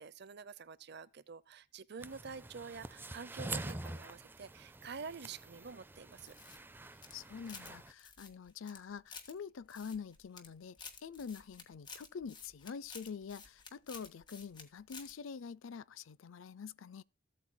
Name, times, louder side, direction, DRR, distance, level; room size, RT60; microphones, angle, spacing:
voice 1, 0.0-6.3, right 5 dB, 55° right, 0.6 m, -48 dB
sound 1, 2.0-7.9, right 2 dB, 10° right, 0.4 m, -46 dB
sound 2, 6.2-7.7 8.0-9.3 9.7-10.5 10.7-14.6 14.9-15.1, left 5 dB, 25° left, 1.7 m, -52 dB
voice 2, 7.1-17.0, left 6 dB, 85° left, 0.5 m, -46 dB
15.0 x 8.4 x 2.2 m
head